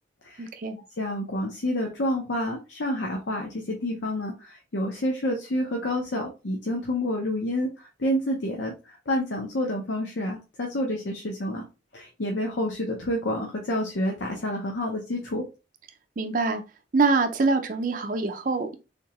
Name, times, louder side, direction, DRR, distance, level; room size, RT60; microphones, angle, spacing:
voice 1, 0.4-0.8 16.2-16.6 16.9-18.8, right 3 dB, 45° right, 0.5 m, -24 dB
voice 2, 1.0-8.7 9.1-11.6 11.9-15.4, left 1 dB, 80° left, 0.7 m, -28 dB
3.6 x 2.8 x 2.9 m
head